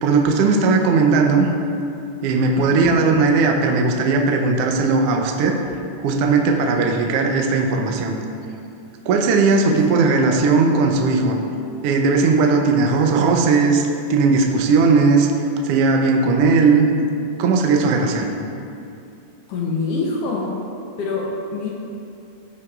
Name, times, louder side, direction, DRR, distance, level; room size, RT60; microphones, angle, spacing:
voice 1, 0.0-1.5 2.2-5.6 6.0-8.2 9.1-11.4 11.8-15.3 15.6-16.9 17.4-18.3, right 4 dB, 75° right, 2 dB, 1.4 m, -17 dB
voice 2, 2.6-3.0 9.5-9.6 19.5-20.5 21.0-21.7, left 4 dB, 70° left, -2 dB, 1.5 m, -25 dB
14.5 x 5.8 x 2.4 m, 2.6 s
omnidirectional pair, 3.4 m